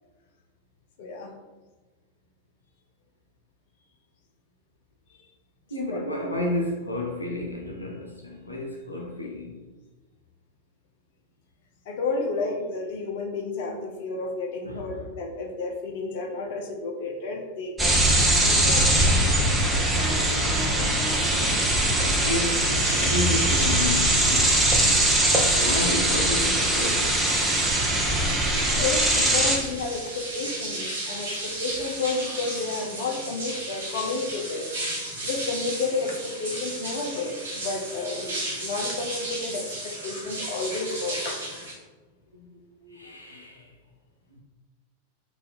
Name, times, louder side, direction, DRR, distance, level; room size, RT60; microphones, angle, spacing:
voice 1, 1.0-1.3 5.9-6.1 11.9-18.9 28.5-34.7 35.2-41.4, left 3 dB, 50° left, 0.7 m, -31 dB
voice 2, 5.7-9.6 14.6-15.1 19.5-19.7 20.6-21.0 21.9-24.8 25.5-27.2 42.3-43.7 44.4-44.5, left 2 dB, 85° left, 0.5 m, -32 dB
sound 1, 17.8-29.6, right 1 dB, 10° right, 0.7 m, -22 dB
sound 2, 20.0-22.4, left 1 dB, 45° right, 1.2 m, -38 dB
sound 3, 22.8-41.7, right 1 dB, 70° right, 1.5 m, -35 dB
3.9 x 2.6 x 4.1 m
figure-of-eight pair, 90°, 0 cm